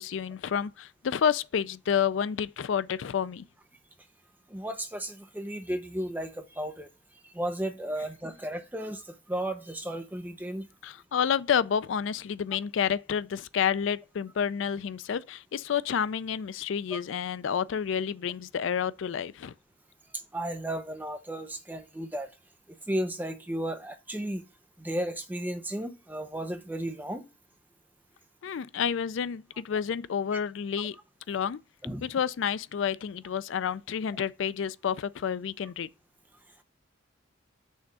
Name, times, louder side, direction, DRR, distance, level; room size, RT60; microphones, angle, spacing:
voice 1, 0.0-3.4 10.8-19.5 28.4-31.0 31.3-31.6 32.0-35.9, left 7 dB, 70° left, 0.4 m, -29 dB
voice 2, 4.5-6.9 7.3-10.7 16.9-17.0 20.3-22.3 22.9-24.4 24.8-27.2 31.8-32.1, right 1 dB, 10° right, 0.8 m, -34 dB
6.3 x 3.5 x 5.4 m
head